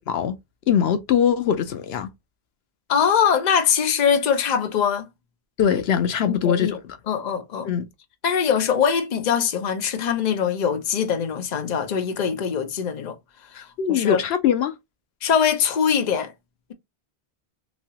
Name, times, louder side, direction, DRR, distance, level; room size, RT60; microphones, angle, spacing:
voice 1, 0.7-2.1 5.6-6.8 7.7-7.9 13.5-14.7, left 8 dB, 80° left, 0.8 m, -22 dB
voice 2, 2.9-5.1 6.3-6.8 7.1-7.7 8.2-13.1 13.5-14.2 15.2-16.3, left 7 dB, 50° left, 0.7 m, -22 dB
3.0 x 2.8 x 2.7 m
omnidirectional pair, 1.0 m